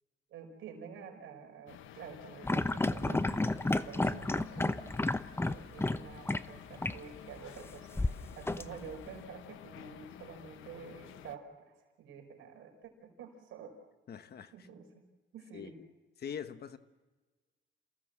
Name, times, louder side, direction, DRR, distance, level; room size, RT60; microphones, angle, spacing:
voice 1, 0.3-4.8 5.4-13.8 14.5-15.0 15.3-15.8, right 6 dB, 85° right, 5.0 m, -49 dB
sound 1, 1.7-11.4, left 11 dB, 85° left, 1.1 m, -52 dB
sound 2, 2.4-6.0 6.3-6.4 6.8-7.0 8.0-9.1, left 2 dB, 10° left, 0.8 m, -31 dB
voice 2, 14.1-14.7 15.5-15.7 16.2-16.8, left 8 dB, 55° left, 1.3 m, -43 dB
28.5 x 17.0 x 7.6 m
cardioid pair, 90°, 20 cm